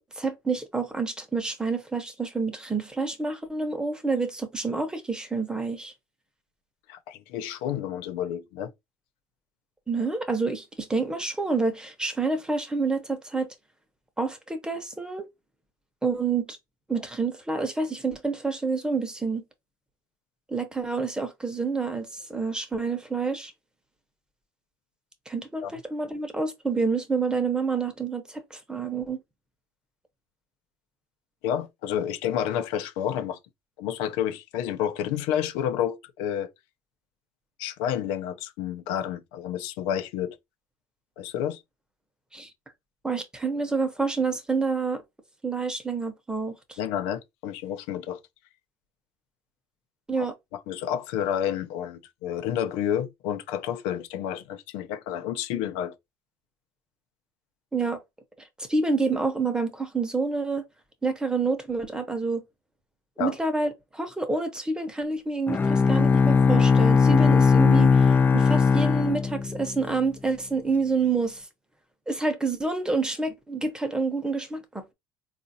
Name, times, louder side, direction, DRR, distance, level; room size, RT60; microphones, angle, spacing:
voice 1, 0.2-5.9 9.9-13.5 14.2-15.3 16.0-16.6 16.9-19.4 20.5-23.5 25.3-29.2 42.3-42.5 43.0-45.0 45.4-46.8 50.1-50.3 57.7-58.0 58.7-60.6 61.0-62.4 63.2-71.4 72.1-74.9, right 4 dB, 10° right, 0.8 m, -28 dB
voice 2, 6.9-8.7 25.6-25.7 31.4-33.4 33.8-36.5 37.6-40.4 41.2-41.6 46.8-48.2 50.2-50.3 50.7-55.9 63.2-63.4, left 10 dB, 85° left, 0.6 m, -30 dB
Bowed string instrument, 65.5-69.9, left 5 dB, 20° left, 0.4 m, -19 dB
3.8 x 2.5 x 2.7 m
cardioid pair, 115°, 9 cm